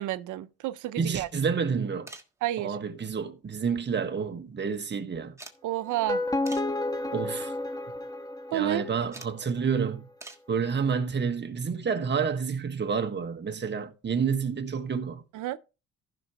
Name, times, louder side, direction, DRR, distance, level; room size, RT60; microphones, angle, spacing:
voice 1, 0.0-1.3 2.4-2.8 5.6-6.2 8.5-8.9 15.3-15.6, right 14 dB, 80° right, 0.6 m, -30 dB
voice 2, 1.0-2.1 2.6-5.4 7.1-7.5 8.5-10.1 10.5-15.2, right 6 dB, 35° right, 1.4 m, -29 dB
sound 1, 2.1-2.4 3.6-4.2 4.5-4.6 5.4-5.6 6.5-6.8 7.5-7.7 9.1-9.4 10.2-10.5 12.1-12.2 13.6-13.7 13.9-14.0, right 2 dB, 10° right, 1.5 m, -46 dB
sound 2, 5.9-9.0, left 2 dB, 15° left, 1.2 m, -31 dB
15.0 x 6.0 x 2.9 m
cardioid pair, 90°, 30 cm